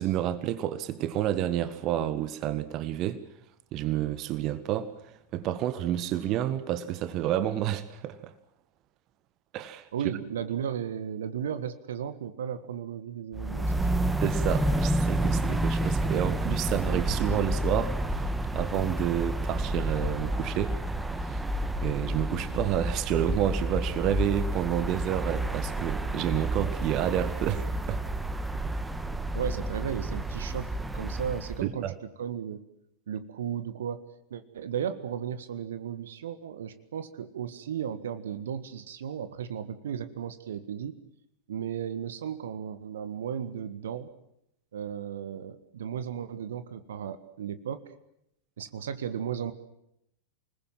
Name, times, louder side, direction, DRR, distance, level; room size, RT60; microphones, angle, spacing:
voice 1, 0.0-3.2 3.7-4.9 5.3-8.3 9.5-9.9 14.2-18.0 18.5-20.8 21.2-21.4 21.8-28.0 31.6-31.9, right 12 dB, 35° right, 1.6 m, -29 dB
voice 2, 9.9-13.9 29.3-32.6 33.1-34.0 34.3-41.0 41.5-44.1 44.7-47.9 48.6-49.5, right 8 dB, 60° right, 1.6 m, -35 dB
sound 1, 13.3-31.6, right 1 dB, 5° right, 1.8 m, -30 dB
28.0 x 20.5 x 7.5 m
figure-of-eight pair, 90°, 0 cm